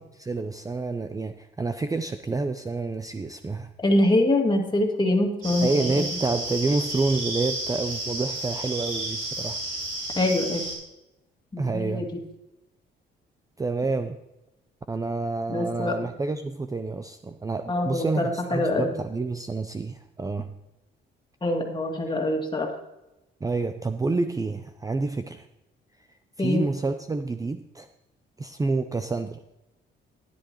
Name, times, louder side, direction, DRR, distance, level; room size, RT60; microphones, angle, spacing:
voice 1, 0.0-3.7 5.6-9.6 11.6-12.1 13.6-14.2 14.9-20.5 23.4-25.5 26.4-27.9 28.4-29.4, right 3 dB, 15° right, 9 dB, 0.5 m, -28 dB
voice 2, 3.8-6.1 10.2-10.7 11.5-12.1 15.5-16.0 17.7-18.9 21.4-22.7 26.4-26.6, left 1 dB, 25° left, 1 dB, 2.3 m, -24 dB
sound 1, 5.4-10.7, right 1 dB, 90° right, 4.4 m, -32 dB
13.0 x 10.5 x 3.0 m, 0.93 s
cardioid pair, 90°, 20 cm